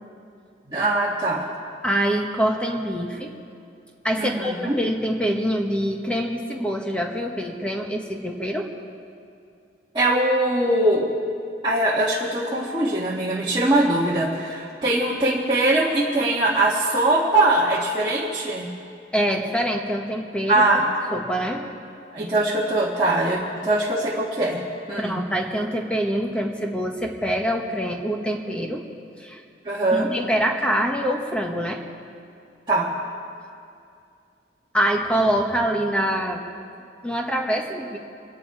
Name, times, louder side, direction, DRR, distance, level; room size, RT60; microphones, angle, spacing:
voice 1, 0.7-1.5 4.2-4.8 9.9-11.1 11.6-18.7 20.5-20.8 22.1-24.6 24.9-25.2 29.6-30.1 32.7-32.9, right 2 dB, 25° right, -7 dB, 1.5 m, -21 dB
voice 2, 1.8-3.3 4.0-8.7 19.1-21.7 25.0-28.8 29.2-29.4 29.9-31.8 34.7-36.4 37.0-38.0, equal, 5° left, 1 dB, 1.3 m, -25 dB
25.5 x 10.5 x 4.8 m, 2.4 s
head